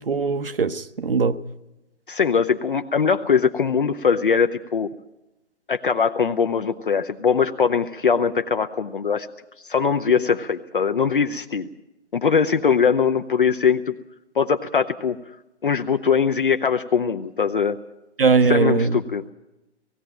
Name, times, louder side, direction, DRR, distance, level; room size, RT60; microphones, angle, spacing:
voice 1, 0.1-1.4 18.2-18.9, right 5 dB, 55° right, 0.9 m, -20 dB
voice 2, 2.1-4.9 5.7-9.3 9.6-11.7 12.1-13.9 14.3-15.2 15.6-17.8 18.5-19.2, left 6 dB, 50° left, 0.8 m, -21 dB
19.0 x 15.0 x 8.9 m
figure-of-eight pair, 140°, 35 cm